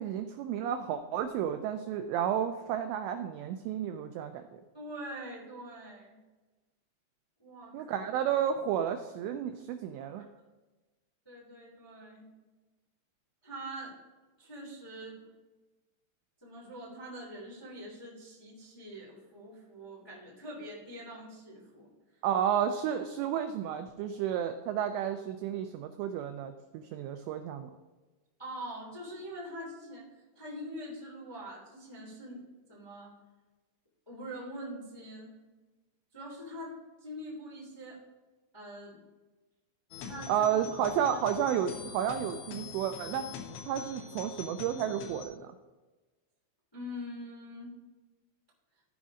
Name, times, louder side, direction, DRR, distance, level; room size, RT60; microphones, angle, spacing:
voice 1, 0.0-4.6 7.7-10.2 22.2-27.7 40.3-43.3 43.7-45.5, right 9 dB, 90° right, 7 dB, 2.5 m, -32 dB
voice 2, 4.7-6.2 7.4-8.0 10.2-10.3 11.2-12.3 13.4-13.9 14.4-15.2 16.4-21.9 28.4-30.0 30.3-32.4 32.7-33.1 34.0-35.3 36.1-36.7 37.0-38.0 38.5-39.0 40.0-40.4 46.7-47.7, equal, 10° left, -6 dB, 1.4 m, -44 dB
sound 1, 39.9-45.2, left 6 dB, 80° left, 2.5 m, -44 dB
15.0 x 5.2 x 3.6 m, 1.2 s
omnidirectional pair, 5.6 m